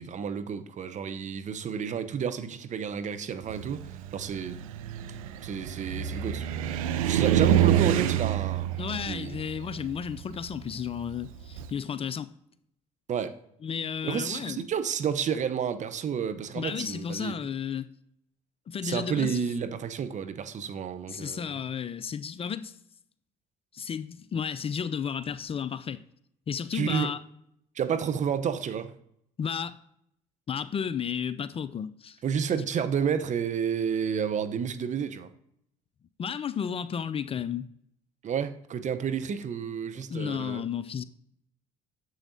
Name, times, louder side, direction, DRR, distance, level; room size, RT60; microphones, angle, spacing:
voice 1, 0.0-4.6 5.4-8.7 9.1-9.4 13.1-13.4 14.0-17.4 18.8-21.5 26.7-27.1 27.8-28.9 32.2-35.3 38.2-40.7, right 7 dB, 45° right, 0.7 m, -31 dB
Car, 3.5-11.7, right 11 dB, 85° right, 0.4 m, -28 dB
voice 2, 8.8-12.3 13.6-14.6 16.5-17.9 18.7-19.4 21.1-22.7 23.7-26.0 26.5-27.2 29.4-29.8 30.5-32.2 36.2-37.7 39.9-41.0, left 7 dB, 35° left, 0.4 m, -33 dB
8.8 x 7.1 x 2.7 m
hypercardioid pair, 60°, 17 cm